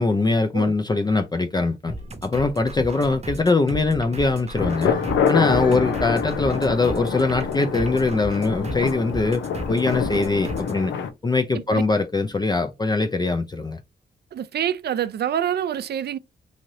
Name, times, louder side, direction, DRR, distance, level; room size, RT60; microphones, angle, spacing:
voice 1, 0.0-1.9 2.2-5.0 5.3-10.9 11.2-13.8, left 3 dB, 20° left, 0.4 m, -22 dB
sound 1, 1.9-10.8, right 1 dB, 35° right, 0.8 m, -35 dB
sound 2, 4.6-11.1, left 7 dB, 85° left, 0.5 m, -26 dB
voice 2, 14.3-16.2, right 10 dB, 60° right, 0.4 m, -26 dB
3.1 x 2.6 x 2.6 m
cardioid pair, 65°, 19 cm